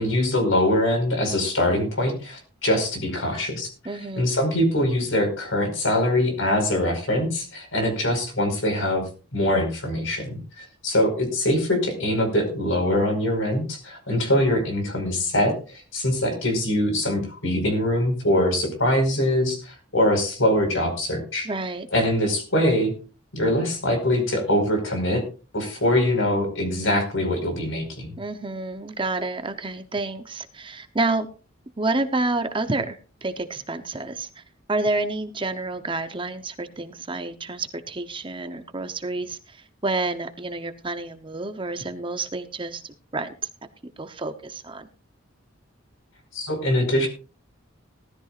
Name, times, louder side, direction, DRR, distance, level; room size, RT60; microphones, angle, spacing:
voice 1, 0.0-9.0 9.3-21.5 21.9-22.9 23.3-25.2 25.5-28.1 46.3-47.1, left 1 dB, 70° left, 5 dB, 5.0 m, -23 dB
voice 2, 3.8-4.3 21.4-21.9 28.2-31.3 31.8-34.4 34.7-43.3 44.0-44.9, right 2 dB, 25° right, 9 dB, 0.8 m, -29 dB
18.5 x 13.5 x 2.5 m, 0.35 s
head